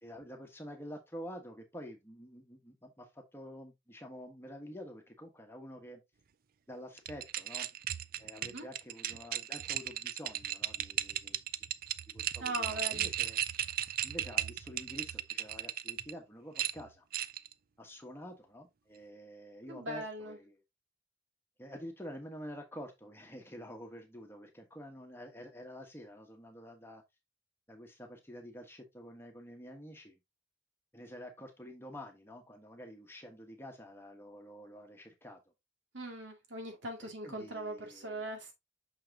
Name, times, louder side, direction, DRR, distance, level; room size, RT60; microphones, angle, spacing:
voice 1, 0.0-6.0 6.7-7.7 8.2-11.4 12.1-13.4 14.0-17.0 17.8-20.6 21.6-27.0 27.7-30.2 30.9-35.4 37.0-38.3, equal, 10° left, 1.3 m, -48 dB
sound 1, 7.0-16.1 16.6-17.5, right 12 dB, 50° right, 0.4 m, -36 dB
voice 2, 12.4-13.1 19.7-20.4 35.9-38.5, right 1 dB, 75° right, 2.3 m, -40 dB
6.3 x 5.8 x 2.8 m
head